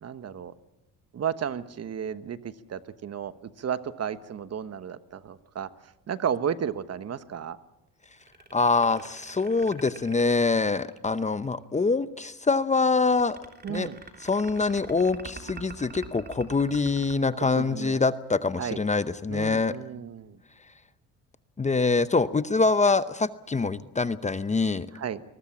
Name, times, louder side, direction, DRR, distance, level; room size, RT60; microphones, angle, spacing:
voice 1, 0.0-0.5 1.1-5.7 6.1-7.6 13.6-14.0 17.6-18.0 18.6-18.8 19.3-20.4 24.9-25.2, right 8 dB, 45° right, 12 dB, 1.2 m, -33 dB
sound 1, 8.2-11.3 12.8-18.3, right 4 dB, 30° right, 3.4 m, -45 dB
voice 2, 8.5-13.4 13.7-13.9 14.2-19.8 21.6-24.9, left 4 dB, 20° left, 13 dB, 0.8 m, -25 dB
22.5 x 20.5 x 7.3 m, 0.95 s
cardioid pair, 85°, 34 cm